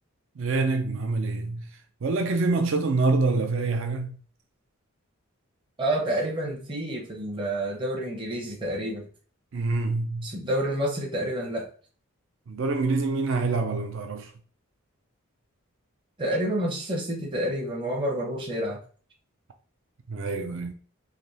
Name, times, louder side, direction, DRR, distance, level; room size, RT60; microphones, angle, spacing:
voice 1, 0.4-1.7 2.0-4.2 9.5-10.3 12.5-14.3 20.1-20.7, right 3 dB, 65° right, 0.4 m, -26 dB
voice 2, 5.8-9.1 10.2-11.7 16.2-18.8, right 1 dB, 25° right, 0.7 m, -29 dB
3.4 x 2.9 x 2.6 m
head